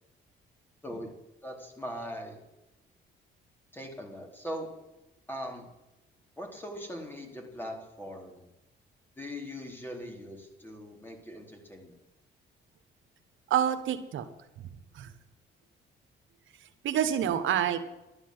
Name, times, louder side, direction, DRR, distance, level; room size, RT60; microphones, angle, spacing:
voice 1, 1.4-2.4 3.7-4.7 5.3-5.7 6.4-8.5 9.2-11.9, equal, 10° left, 1 dB, 4.2 m, -40 dB
voice 2, 13.5-14.3 14.9-15.1 16.8-17.8, right 9 dB, 80° right, 9 dB, 1.3 m, -27 dB
12.0 x 11.0 x 7.9 m, 0.95 s
cardioid pair, 90°, 20 cm